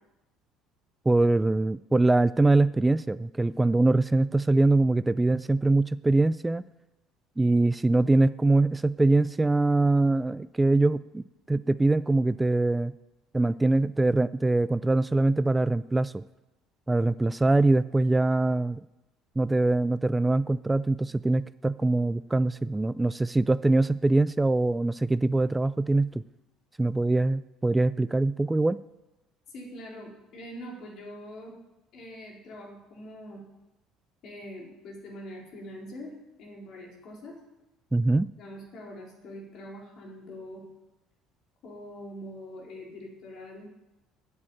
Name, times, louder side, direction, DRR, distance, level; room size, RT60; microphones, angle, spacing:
voice 1, 1.1-6.6 7.4-12.9 13.3-16.2 16.9-18.8 19.4-26.2 26.8-28.8 37.9-38.3, right 2 dB, 15° right, 16 dB, 0.3 m, -23 dB
voice 2, 29.5-31.5 31.9-33.4 34.2-37.4 38.4-40.6 41.6-43.7, equal, 60° left, -1 dB, 4.2 m, -43 dB
9.0 x 8.4 x 8.8 m, 0.98 s
supercardioid pair, 75°, 0 cm